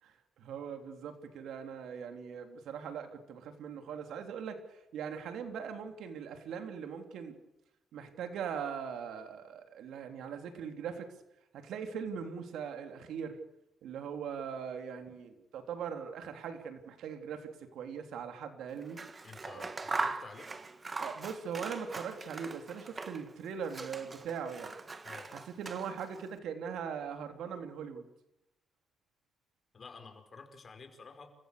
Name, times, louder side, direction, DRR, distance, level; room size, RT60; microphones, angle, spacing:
voice 1, 0.0-7.3 7.9-11.1 11.5-13.3 13.8-19.0 19.5-19.6 21.0-24.8 25.6-28.0, right 7 dB, 75° right, 6 dB, 3.5 m, -40 dB
Scissors, 18.8-23.3 23.6-26.2, right 3 dB, 30° right, 1.9 m, -40 dB
voice 2, 19.2-20.5 25.0-25.3 29.7-31.3, left 4 dB, 40° left, 7 dB, 5.1 m, -50 dB
29.0 x 16.0 x 6.9 m, 0.86 s
cardioid pair, 90°, 0 cm